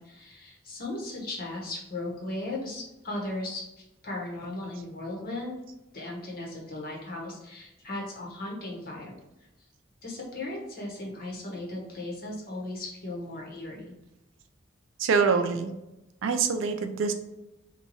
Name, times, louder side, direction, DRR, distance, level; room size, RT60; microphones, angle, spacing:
voice 1, 0.0-5.5 5.9-9.2 10.0-13.9, left 2 dB, 45° left, -2 dB, 1.0 m, -37 dB
voice 2, 15.0-15.7 16.2-17.1, right 5 dB, 75° right, 7 dB, 0.4 m, -25 dB
2.9 x 2.2 x 4.0 m, 0.92 s
head